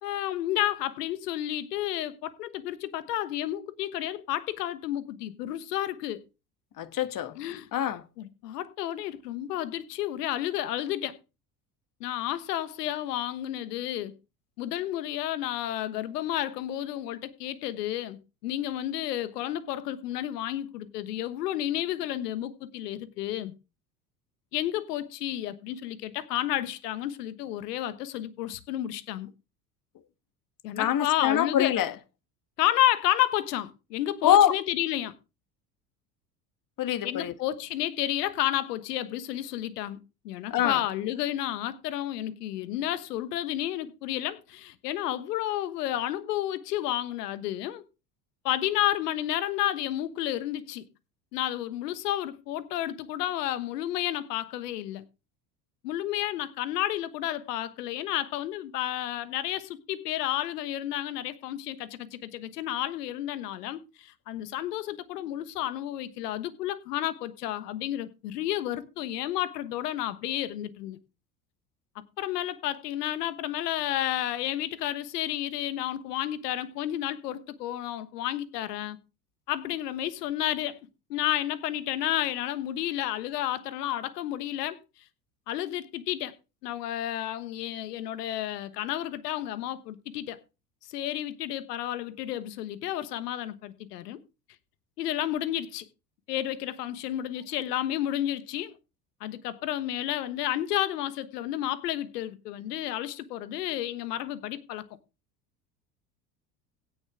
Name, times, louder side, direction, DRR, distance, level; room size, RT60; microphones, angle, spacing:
voice 1, 0.0-6.2 7.3-7.7 8.2-11.2 12.0-14.1 14.6-23.5 24.5-29.3 30.6-31.7 32.6-35.1 37.0-40.0 40.2-47.8 48.4-50.8 51.3-55.0 55.8-71.0 72.2-79.0 79.5-80.8 81.1-84.8 85.5-86.3 86.6-90.4 90.9-94.2 95.0-95.8 96.3-98.7 99.2-104.8, left 13 dB, 80° left, 1.3 m, -31 dB
voice 2, 6.8-7.3 7.7-8.0 30.8-31.9 34.2-34.5 36.8-37.3 40.5-40.8, left 10 dB, 45° left, 1.4 m, -24 dB
17.0 x 6.8 x 3.6 m
hypercardioid pair, 75°, 47 cm